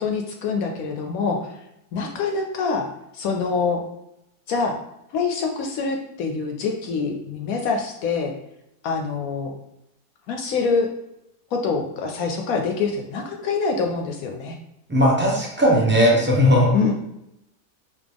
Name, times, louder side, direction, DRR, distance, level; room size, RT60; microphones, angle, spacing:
voice 1, 0.0-1.6 1.9-2.9 3.1-3.8 4.5-4.8 5.1-8.3 8.8-9.5 10.3-10.9 11.5-14.6 16.7-16.9, left 4 dB, 70° left, 2 dB, 0.9 m, -25 dB
voice 2, 14.9-16.7, equal, 10° right, -3 dB, 0.5 m, -17 dB
4.1 x 3.0 x 3.4 m, 0.84 s
omnidirectional pair, 1.7 m